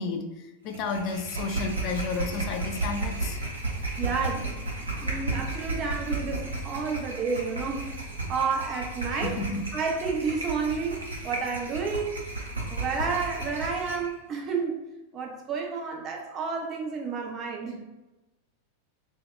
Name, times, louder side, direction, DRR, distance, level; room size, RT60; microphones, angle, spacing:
voice 1, 0.0-3.4 9.2-9.6, left 4 dB, 40° left, 4 dB, 0.3 m, -32 dB
sound 1, 0.7-14.1, right 2 dB, 75° right, 0.7 m, -33 dB
voice 2, 4.0-9.4 9.7-12.3 12.7-14.8 15.1-17.8, right 5 dB, 30° right, 1 dB, 0.5 m, -31 dB
2.2 x 2.1 x 3.6 m, 1.0 s
figure-of-eight pair, 90°, 0 cm